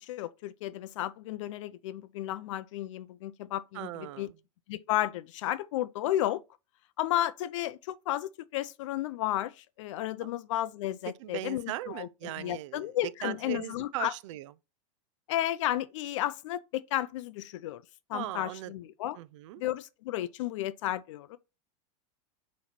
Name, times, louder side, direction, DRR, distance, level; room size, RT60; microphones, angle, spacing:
voice 1, 0.0-3.9 4.2-4.3 4.7-6.4 7.0-14.1 15.3-17.8 18.1-19.2 19.6-21.4, left 14 dB, 65° left, 0.4 m, -33 dB
voice 2, 3.7-4.4 10.2-10.3 11.2-14.5 18.1-18.7 19.1-19.6, right 15 dB, 60° right, 0.4 m, -39 dB
7.9 x 3.1 x 4.3 m
supercardioid pair, 165°, 17 cm